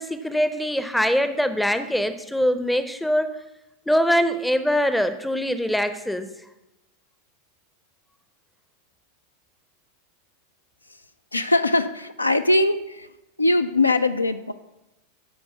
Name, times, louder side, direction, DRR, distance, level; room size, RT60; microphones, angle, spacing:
voice 1, 0.0-3.3 3.9-6.3, equal, 5° left, 11 dB, 0.5 m, -23 dB
voice 2, 11.3-13.1 13.4-14.5, left 2 dB, 85° left, 11 dB, 0.3 m, -21 dB
7.1 x 4.0 x 5.7 m, 0.93 s
figure-of-eight pair, 90°, 0 cm